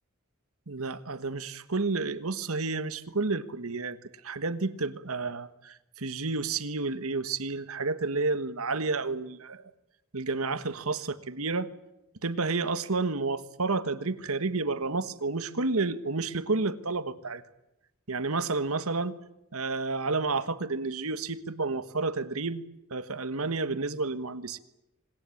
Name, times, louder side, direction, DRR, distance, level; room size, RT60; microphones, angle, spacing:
voice 1, 0.7-4.0 4.2-9.6 10.1-11.7 12.2-17.4 18.1-19.1 19.5-22.6 22.9-24.6, right 3 dB, 75° right, 13 dB, 1.5 m, -30 dB
26.0 x 21.0 x 8.6 m, 0.90 s
head